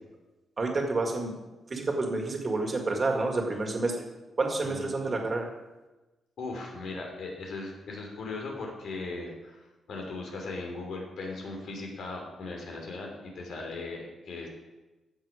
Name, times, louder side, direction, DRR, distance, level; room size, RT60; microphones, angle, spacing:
voice 1, 0.6-1.3 1.7-4.0 4.4-5.5, right 3 dB, 30° right, 2 dB, 2.0 m, -29 dB
voice 2, 6.4-14.5, left 3 dB, 70° left, 0 dB, 3.0 m, -38 dB
15.0 x 6.3 x 5.0 m, 1.1 s
cardioid pair, 135°, 0 cm